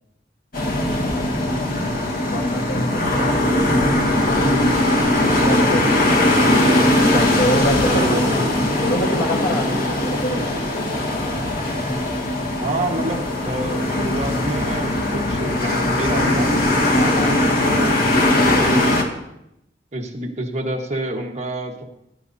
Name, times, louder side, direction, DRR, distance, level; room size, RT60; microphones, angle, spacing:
sound 1, 0.5-19.0, left 1 dB, 55° left, 2.0 m, -20 dB
voice 1, 1.6-2.0 7.8-8.4 12.6-16.5 17.3-19.0 19.9-21.8, right 2 dB, 40° right, 1 dB, 1.4 m, -28 dB
voice 2, 2.3-4.5 5.2-6.4 6.9-8.4 8.8-10.9 15.2-15.6 16.9-17.4, equal, 75° left, 3 dB, 1.6 m, -27 dB
18.5 x 10.5 x 2.8 m, 0.82 s
head